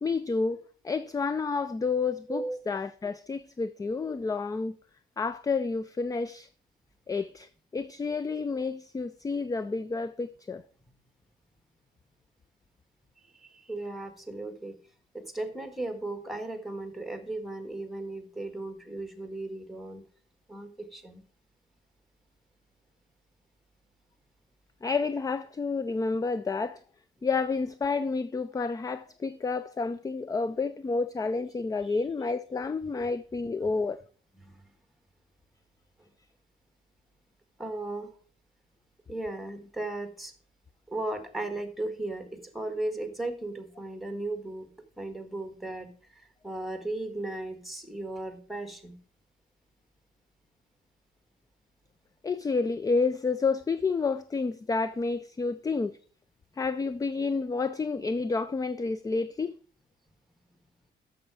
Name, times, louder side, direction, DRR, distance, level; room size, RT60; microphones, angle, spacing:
voice 1, 0.0-4.8 5.2-6.5 7.1-10.6 24.8-26.8 27.2-34.0 52.2-56.0 56.6-59.6, left 4 dB, 20° left, 0.4 m, -30 dB
voice 2, 2.3-2.6 13.3-14.7 15.1-20.0 20.5-21.2 31.9-32.0 34.4-34.6 36.0-36.1 37.6-38.1 39.1-40.3 40.9-44.7 45.0-49.0, right 2 dB, ahead, 1.6 m, -36 dB
8.7 x 6.9 x 4.7 m
cardioid pair, 90°, 20 cm